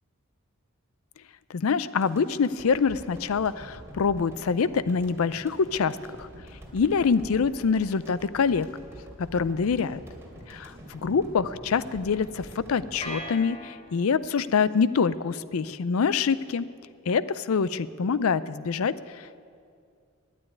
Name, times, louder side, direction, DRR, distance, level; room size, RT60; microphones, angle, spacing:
voice 1, 1.5-6.3 6.7-8.7 9.2-10.0 10.5-16.7 17.1-18.9, left 5 dB, 85° left, 16 dB, 0.5 m, -25 dB
sound 1, 2.0-14.2 14.6-14.7, equal, 15° right, 2.8 m, -46 dB
sound 2, 13.0-14.4, equal, 30° left, 3.4 m, -39 dB
12.0 x 9.5 x 9.6 m, 2.3 s
head